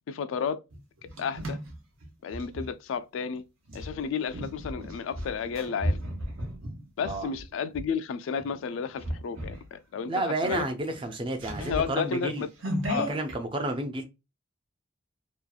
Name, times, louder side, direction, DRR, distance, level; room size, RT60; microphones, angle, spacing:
voice 1, 0.1-0.6 1.2-1.6 2.2-3.4 3.7-6.0 7.0-10.7 11.6-12.5 12.9-13.1, left 6 dB, 75° left, 0.3 m, -32 dB
sound 1, 0.7-2.7 3.7-7.9 8.4-8.6 9.0-9.7 10.0-10.1 10.4-13.4, equal, 90° right, 1.0 m, -35 dB
voice 2, 10.1-12.4 13.1-14.0, right 2 dB, 25° right, 0.4 m, -31 dB
2.8 x 2.3 x 2.2 m
head